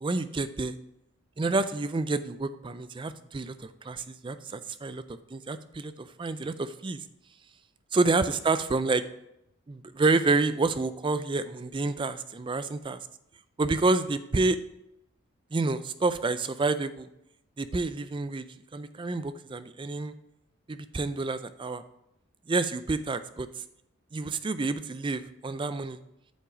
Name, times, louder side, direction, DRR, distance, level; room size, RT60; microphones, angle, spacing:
voice 1, 0.0-0.8 1.4-5.0 5.3-7.0 7.9-9.0 9.7-13.0 13.6-14.6 15.5-17.1 17.6-18.5 18.7-20.1 20.7-21.8 22.5-23.6 24.1-26.0, right 3 dB, 20° right, 12 dB, 0.3 m, -28 dB
8.7 x 5.8 x 4.9 m, 0.82 s
head